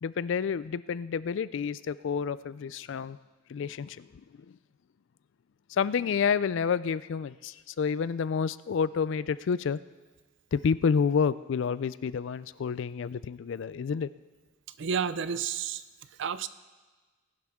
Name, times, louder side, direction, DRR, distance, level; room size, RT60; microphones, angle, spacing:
voice 1, 0.0-3.2 3.5-4.2 4.5-4.6 5.7-9.8 10.5-14.1, left 6 dB, 65° left, 17 dB, 0.4 m, -29 dB
voice 2, 14.8-15.8 16.2-16.5, right 7 dB, 65° right, 14 dB, 0.5 m, -30 dB
19.0 x 11.5 x 3.6 m, 1.3 s
head